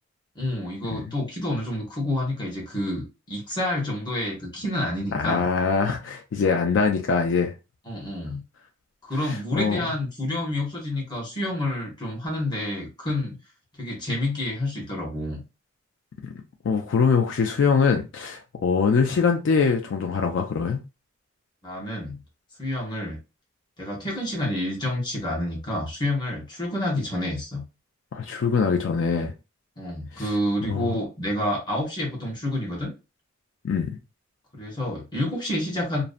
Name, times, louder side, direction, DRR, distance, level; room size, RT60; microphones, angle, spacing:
voice 1, 0.3-5.4 7.9-8.4 9.0-13.4 13.8-15.4 21.6-22.2 22.6-23.2 23.8-27.6 29.8-32.9 34.5-36.0, left 1 dB, 20° left, 0.9 m, -28 dB
voice 2, 5.1-7.5 9.2-9.8 16.2-16.3 16.6-20.8 28.1-29.3 30.1-30.3 30.7-31.0 33.6-33.9, left 5 dB, 65° left, 0.4 m, -23 dB
2.5 x 2.1 x 2.4 m
head